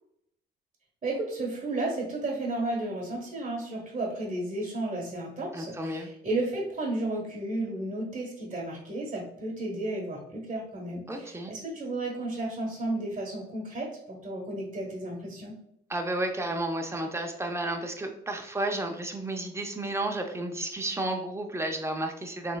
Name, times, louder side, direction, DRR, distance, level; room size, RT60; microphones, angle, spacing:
voice 1, 1.0-15.6, right 2 dB, 35° right, -2 dB, 1.0 m, -33 dB
voice 2, 5.5-6.1 11.1-11.5 15.9-22.6, right 1 dB, 15° right, 4 dB, 0.5 m, -32 dB
3.6 x 3.0 x 2.2 m, 0.74 s
cardioid pair, 90°, 20 cm